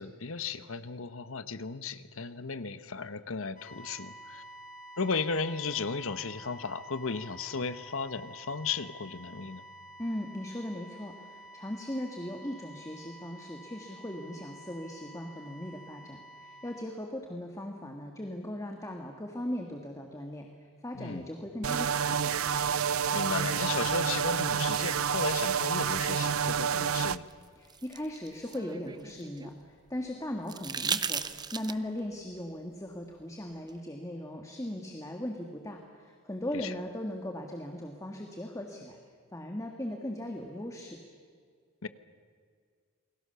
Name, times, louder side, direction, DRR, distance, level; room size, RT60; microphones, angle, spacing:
voice 1, 0.0-4.4 5.0-9.6 20.9-21.3 23.1-27.3 36.5-36.8 41.8-41.9, left 4 dB, 70° left, 12 dB, 1.1 m, -35 dB
sound 1, 3.6-16.8, right 1 dB, 40° left, 5.6 m, -50 dB
voice 2, 10.0-20.5 20.8-22.3 27.6-31.2 31.5-39.0 39.3-41.0, left 1 dB, 15° left, 3 dB, 1.7 m, -38 dB
sound 2, 21.6-27.2, right 7 dB, 80° right, 0.6 m, -29 dB
sound 3, 27.3-29.6 30.5-32.0 33.7-33.8, right 6 dB, 20° right, 0.7 m, -36 dB
29.0 x 21.5 x 6.9 m, 2.1 s
head